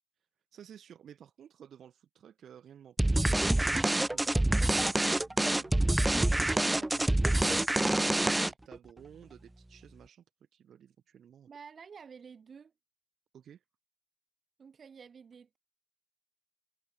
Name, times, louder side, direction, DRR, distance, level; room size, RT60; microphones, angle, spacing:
voice 1, 0.5-7.6 8.0-10.2 10.5-11.5 13.3-13.6, right 9 dB, 85° right, 6.2 m, -54 dB
sound 1, 3.0-8.7, right 1 dB, 20° right, 0.3 m, -26 dB
voice 2, 11.5-12.7 14.6-15.6, right 6 dB, 70° right, 3.4 m, -50 dB
supercardioid pair, 45°, 0 cm